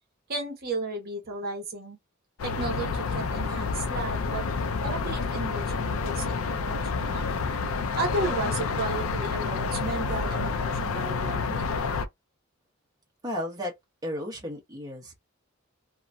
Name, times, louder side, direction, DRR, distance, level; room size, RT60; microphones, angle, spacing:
voice 1, 0.3-2.0 2.4-4.4 4.8-7.3 8.0-11.9, right 2 dB, 50° right, 1.0 m, -34 dB
sound 1, 2.4-12.1, left 4 dB, 85° left, 0.4 m, -29 dB
voice 2, 13.2-13.7 14.0-15.2, left 1 dB, 20° right, 1.0 m, -33 dB
2.8 x 2.6 x 2.2 m
head